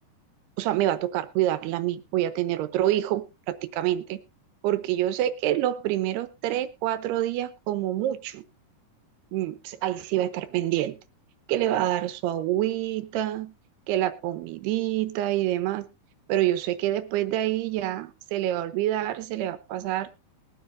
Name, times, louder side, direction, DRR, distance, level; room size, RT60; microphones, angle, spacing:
voice 1, 0.6-4.2 4.6-8.4 9.3-11.0 11.5-13.5 13.9-15.9 16.3-20.1, right 13 dB, 90° right, 3.0 m, -27 dB
21.5 x 7.9 x 2.5 m
omnidirectional pair, 4.6 m